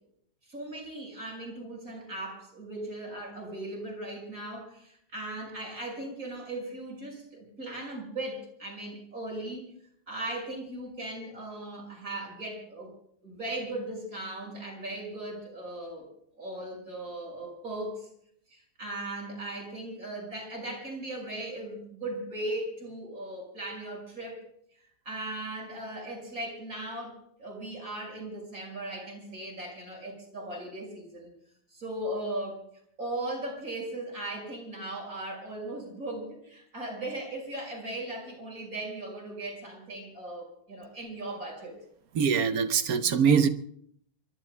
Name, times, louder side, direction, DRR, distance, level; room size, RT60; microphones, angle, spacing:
voice 1, 0.5-9.6 10.1-12.9 13.2-16.1 16.4-18.1 18.5-24.4 25.1-31.3 31.7-32.6 33.0-41.8, right 1 dB, 40° right, 6.2 m, -38 dB
voice 2, 42.1-43.5, right 6 dB, 65° right, 0.9 m, -23 dB
27.0 x 23.0 x 2.2 m
omnidirectional pair, 2.4 m